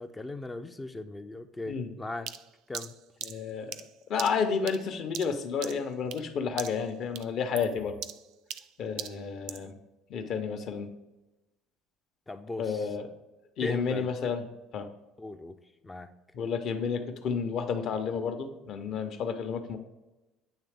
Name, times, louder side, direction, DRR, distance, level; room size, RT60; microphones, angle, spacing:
voice 1, 0.0-2.3 2.7-3.0 12.3-13.0 13.6-14.3 15.2-15.6 15.8-16.1, left 2 dB, 15° left, 8 dB, 0.3 m, -39 dB
sound 1, 2.3-6.3 6.6-6.9 7.2-9.7, right 11 dB, 70° right, 0.4 m, -41 dB
voice 2, 3.2-3.7 4.1-8.0 8.8-9.8 10.1-10.9 12.6-13.0 13.6-14.4 14.7-14.9 16.3-19.8, left 6 dB, 50° left, 7 dB, 0.7 m, -31 dB
8.9 x 3.2 x 3.5 m, 1.0 s
cardioid pair, 135°, 0 cm